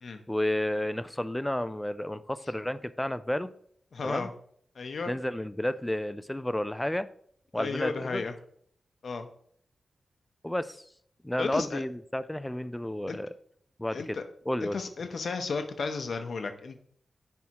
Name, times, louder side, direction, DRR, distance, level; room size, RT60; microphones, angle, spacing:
voice 1, 0.3-3.5 4.0-4.3 5.1-7.1 7.5-8.2 10.4-10.8 11.2-13.3 13.8-14.2 14.5-14.8, left 1 dB, 10° left, 13 dB, 0.3 m, -31 dB
voice 2, 3.9-4.3 4.8-5.1 7.6-8.3 9.0-9.3 11.4-11.8 13.1-13.2 13.9-14.2 14.6-16.8, left 4 dB, 65° left, 7 dB, 0.7 m, -34 dB
10.5 x 3.5 x 2.9 m, 0.63 s
wide cardioid pair, 85°, 0 cm